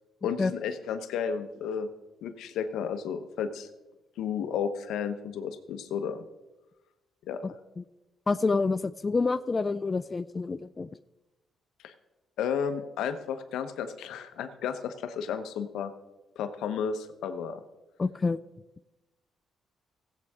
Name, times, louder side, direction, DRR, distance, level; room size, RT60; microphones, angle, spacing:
voice 1, 0.2-1.9 2.2-3.7 4.2-6.3 7.3-7.4 11.8-11.9 12.4-15.9 16.4-17.6, left 7 dB, 85° left, 9 dB, 0.9 m, -32 dB
voice 2, 7.4-7.8 8.3-10.9 18.0-18.4, left 4 dB, 30° left, 13 dB, 0.3 m, -28 dB
16.5 x 8.4 x 3.6 m, 1.1 s
cardioid pair, 90°, 0 cm